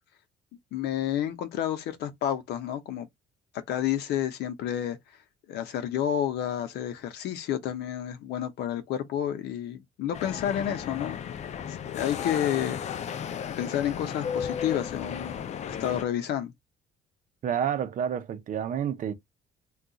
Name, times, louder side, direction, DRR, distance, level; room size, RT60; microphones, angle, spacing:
voice 1, 0.7-3.1 3.7-5.0 5.5-11.2 11.7-12.8 13.6-16.5, left 10 dB, 75° left, 0.7 m, -30 dB
sound 1, 10.1-16.0, left 8 dB, 40° left, 0.4 m, -34 dB
voice 2, 17.4-19.1, right 8 dB, 50° right, 0.6 m, -29 dB
2.3 x 2.3 x 3.8 m
cardioid pair, 110°, 17 cm